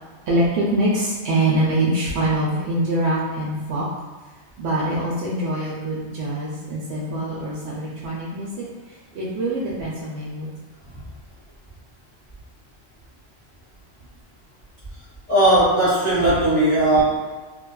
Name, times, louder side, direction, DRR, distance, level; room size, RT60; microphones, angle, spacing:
voice 1, 0.3-3.9 4.6-8.5 9.1-10.5, right 1 dB, 70° right, -5 dB, 0.8 m, -24 dB
voice 2, 15.3-17.0, right 1 dB, 10° left, -12 dB, 1.0 m, -17 dB
2.8 x 2.4 x 2.2 m, 1.4 s
omnidirectional pair, 1.3 m